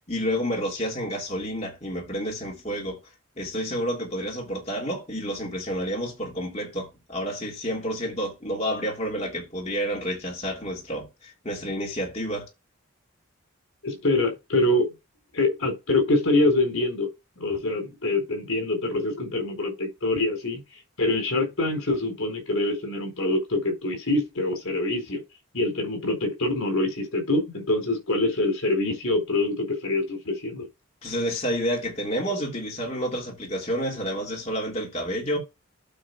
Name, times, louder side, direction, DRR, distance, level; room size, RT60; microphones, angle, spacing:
voice 1, 0.1-3.0 3.4-12.5 31.0-35.4, equal, 30° left, 3.1 m, -29 dB
voice 2, 13.8-14.9 15.3-17.1 17.4-20.6 21.0-25.2 25.5-30.7, left 2 dB, 75° left, 4.1 m, -25 dB
8.8 x 3.9 x 7.0 m
head